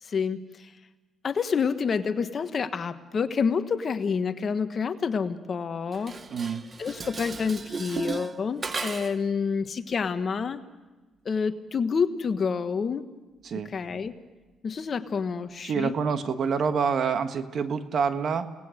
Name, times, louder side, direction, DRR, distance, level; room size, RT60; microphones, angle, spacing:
voice 1, 0.0-0.7 1.2-6.1 6.8-10.6 11.2-13.0 13.7-14.1 14.6-15.9, left 5 dB, 45° left, 9 dB, 1.3 m, -28 dB
Dishes pots and pans, 5.9-9.3, right 4 dB, 35° right, 0.9 m, -35 dB
voice 2, 6.3-6.6 13.4-13.7 15.6-18.5, right 6 dB, 60° right, 9 dB, 1.5 m, -27 dB
29.5 x 18.5 x 6.5 m, 1.2 s
cardioid pair, 90°, 0 cm